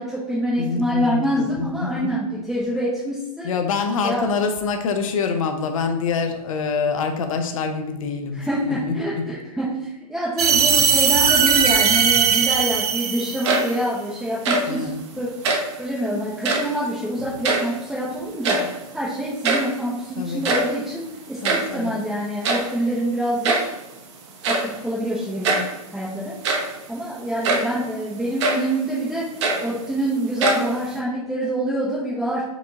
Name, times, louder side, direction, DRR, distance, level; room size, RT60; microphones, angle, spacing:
voice 1, 0.0-3.5 4.0-4.3 8.3-14.9 15.2-15.3 15.8-23.6 24.5-26.4 26.9-29.3 29.6-32.4, equal, ahead, -7 dB, 0.6 m, -26 dB
voice 2, 0.6-2.1 3.4-9.3 14.7-15.0 20.2-20.4 21.4-21.9, left 5 dB, 60° left, 6 dB, 0.7 m, -26 dB
sound 1, 10.4-13.7, right 6 dB, 80° right, 0.7 m, -18 dB
sound 2, 13.2-13.9 14.3-14.8 15.4-15.8 16.3-16.8 17.2-18.0 18.3-18.9 19.2-19.3 19.4-19.8 20.3-21.8 22.4-22.8 23.4-23.8 24.4-24.8 25.4-25.7 26.3-26.8 27.4-27.8 28.4-28.7 29.2-30.0 30.4-31.0, right 3 dB, 45° right, 0.8 m, -23 dB
4.7 x 2.8 x 3.7 m, 0.94 s
hypercardioid pair, 125°, 20 cm